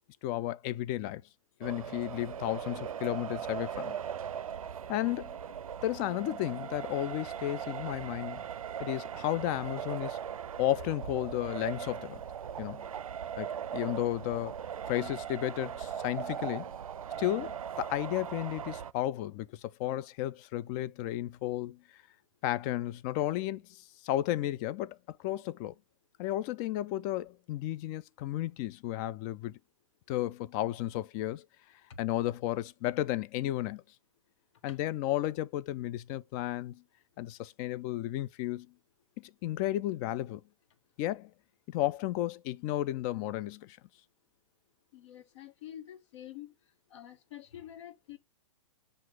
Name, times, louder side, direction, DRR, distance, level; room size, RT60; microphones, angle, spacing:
voice 1, 0.2-1.2 1.6-4.0 4.9-5.4 5.8-8.4 8.8-10.2 10.6-12.2 12.6-12.8 13.4-14.5 14.9-16.7 17.2-21.8 22.4-25.7 26.2-29.6 30.1-31.4 32.0-33.8 34.6-36.8 37.2-38.7 39.2-40.4 41.0-41.3 41.7-43.8, left 14 dB, 30° left, 0.3 m, -33 dB
sound 1, 1.6-18.9, right 8 dB, 75° right, 0.4 m, -39 dB
voice 2, 44.9-46.5 46.9-48.2, left 11 dB, 55° left, 1.3 m, -47 dB
7.5 x 2.5 x 5.8 m
figure-of-eight pair, 115°, 18 cm